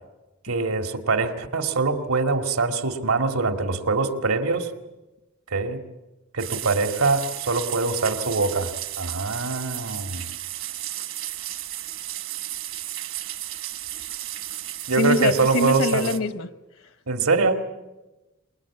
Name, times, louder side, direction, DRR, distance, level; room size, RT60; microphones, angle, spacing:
voice 1, 0.4-4.7 5.5-5.8 6.3-10.3 14.9-16.1 17.1-17.6, right 3 dB, 85° right, 6 dB, 2.1 m, -23 dB
sound 1, 6.4-16.2, right 14 dB, 65° right, 1.4 m, -34 dB
voice 2, 15.0-16.5, left 2 dB, 75° left, 12 dB, 1.0 m, -23 dB
25.0 x 21.5 x 8.6 m, 1.1 s
head